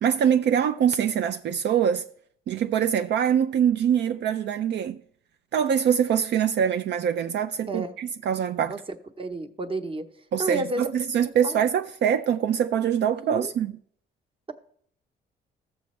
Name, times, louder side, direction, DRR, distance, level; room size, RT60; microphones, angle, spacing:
voice 1, 0.0-2.0 2.5-5.0 5.5-8.7 10.3-13.7, right 8 dB, 60° right, 0.5 m, -24 dB
voice 2, 9.2-10.1 10.4-10.9 11.4-11.7 13.2-13.5, right 2 dB, 25° right, 0.9 m, -31 dB
14.5 x 7.0 x 3.2 m
cardioid pair, 90°, 20 cm